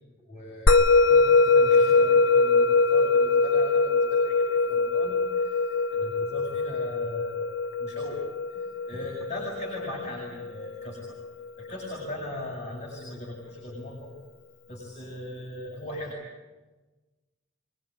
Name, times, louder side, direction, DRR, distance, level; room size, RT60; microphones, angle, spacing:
voice 1, 0.2-8.2 8.5-11.2 11.6-14.1 14.7-16.2, left 1 dB, 35° left, -3 dB, 7.7 m, -39 dB
Musical instrument, 0.7-11.3, left 3 dB, 85° left, 1.1 m, -22 dB
26.0 x 21.5 x 9.8 m, 1.2 s
head